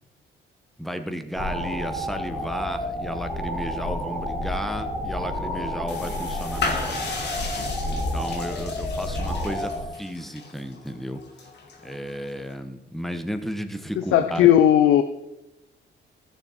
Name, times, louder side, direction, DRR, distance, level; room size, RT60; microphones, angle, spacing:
voice 1, 0.8-6.9 7.8-9.7 10.0-11.2 11.8-14.5, equal, ahead, 7 dB, 1.0 m, -33 dB
sound 1, 1.3-9.8, left 1 dB, 30° left, 3.8 m, -30 dB
sound 2, 5.9-12.5, left 4 dB, 60° left, 1.6 m, -35 dB
voice 2, 14.1-15.0, left 11 dB, 90° left, 10 dB, 0.5 m, -16 dB
14.5 x 6.6 x 4.2 m, 0.95 s
cardioid pair, 90°, 20 cm